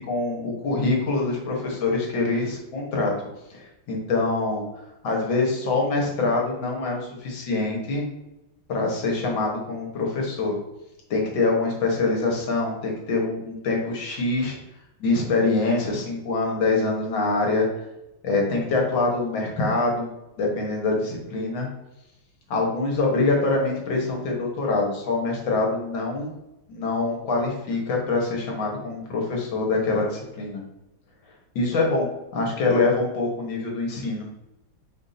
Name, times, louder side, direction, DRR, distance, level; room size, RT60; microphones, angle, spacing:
voice 1, 0.1-3.3 3.5-4.6 5.0-8.1 8.7-10.5 11.1-14.6 15.0-17.7 18.2-20.1 20.4-21.7 22.5-26.3 26.7-30.6 31.5-34.3, left 3 dB, 65° left, -1 dB, 1.8 m, -24 dB
5.0 x 2.6 x 4.0 m, 0.92 s
omnidirectional pair, 2.3 m